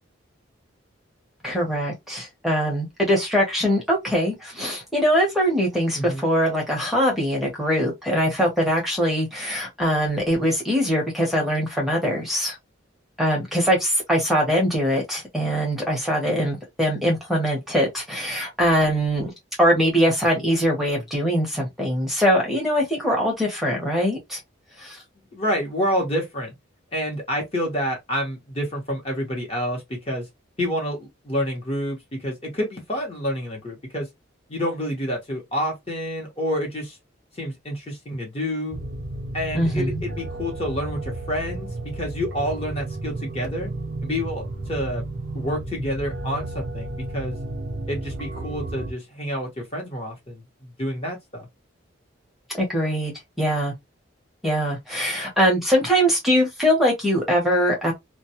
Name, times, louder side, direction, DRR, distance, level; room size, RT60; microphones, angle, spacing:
voice 1, 1.4-12.5 13.2-19.3 19.6-24.4 24.8-25.0 39.5-40.0 52.6-53.7 54.4-57.9, equal, ahead, 0.7 m, -22 dB
voice 2, 6.0-6.3 25.2-26.5 26.9-30.3 30.6-34.1 34.5-37.0 37.4-38.8 39.3-43.7 44.0-45.1 45.3-47.4 47.9-51.5, equal, 30° left, 0.8 m, -28 dB
sound 1, 38.7-48.9, right 2 dB, 60° right, 0.5 m, -32 dB
2.2 x 2.1 x 2.7 m
head